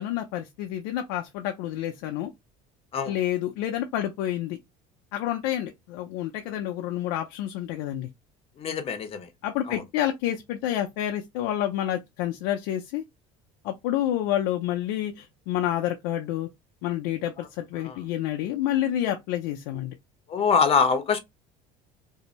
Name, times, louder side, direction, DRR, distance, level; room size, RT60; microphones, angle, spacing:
voice 1, 0.0-2.3 3.1-4.6 5.1-8.1 9.4-13.0 13.6-16.5 16.8-19.9, left 12 dB, 85° left, 0.4 m, -29 dB
voice 2, 8.6-9.3 9.7-9.8 17.8-18.0 20.3-21.2, left 5 dB, 35° left, 0.6 m, -24 dB
2.6 x 2.1 x 2.9 m
supercardioid pair, 110°, 16 cm